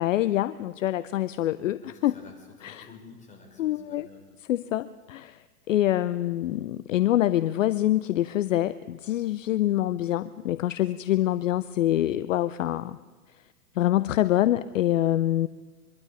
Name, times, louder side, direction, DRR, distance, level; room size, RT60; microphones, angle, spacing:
voice 1, 0.0-2.1 2.6-2.9 3.6-4.1 4.5-5.4 5.7-13.0 13.8-15.5, left 13 dB, 55° left, 15 dB, 0.7 m, -25 dB
voice 2, 1.8-4.2, left 4 dB, 15° left, 0 dB, 5.3 m, -50 dB
23.5 x 13.0 x 8.9 m, 1.4 s
figure-of-eight pair, 110°, 47 cm